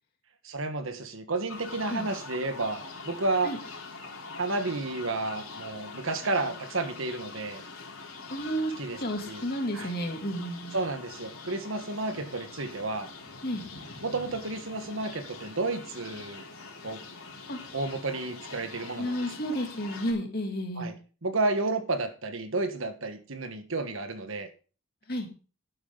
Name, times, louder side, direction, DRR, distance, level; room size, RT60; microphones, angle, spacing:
voice 1, 0.4-3.5 4.4-7.6 8.8-9.0 9.3-9.4 9.7-9.9 10.7-13.1 14.0-16.4 16.8-17.0 17.7-19.1 20.8-20.9 21.2-24.5, right 2 dB, 65° right, 8 dB, 1.4 m, -31 dB
sound 1, 1.5-20.1, left 4 dB, 70° left, 3.8 m, -44 dB
voice 2, 8.3-10.8 13.4-13.6 17.5-17.6 19.0-20.9 25.1-25.3, equal, 45° left, 2 dB, 2.7 m, -32 dB
12.0 x 9.6 x 3.9 m, 0.36 s
head